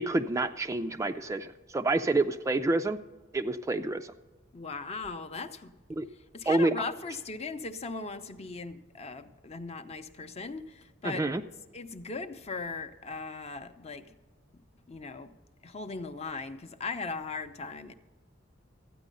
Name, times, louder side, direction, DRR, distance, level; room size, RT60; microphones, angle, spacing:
voice 1, 0.0-3.0 3.3-4.1 6.0-6.1 6.5-6.7 11.0-11.4, right 2 dB, 15° right, 9 dB, 0.3 m, -28 dB
voice 2, 4.5-5.7 6.3-11.5 11.7-14.1 14.9-15.3 15.6-17.9, left 4 dB, 35° left, 9 dB, 0.6 m, -38 dB
13.0 x 9.1 x 5.3 m, 1.3 s
head